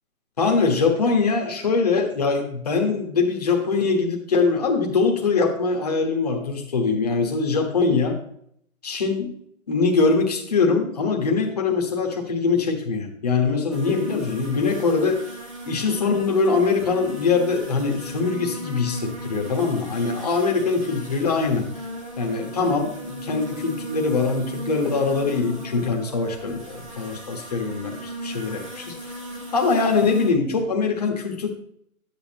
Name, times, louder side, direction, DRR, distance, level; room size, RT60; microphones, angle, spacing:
voice 1, 0.4-8.2 8.8-9.3 9.7-15.2 15.6-21.7 22.2-29.1 29.5-31.5, left 4 dB, 25° left, 2 dB, 1.4 m, -22 dB
sound 1, 13.7-30.3, equal, 20° right, 1.5 m, -37 dB
12.5 x 9.0 x 2.9 m, 0.68 s
hypercardioid pair, 170°, 43 cm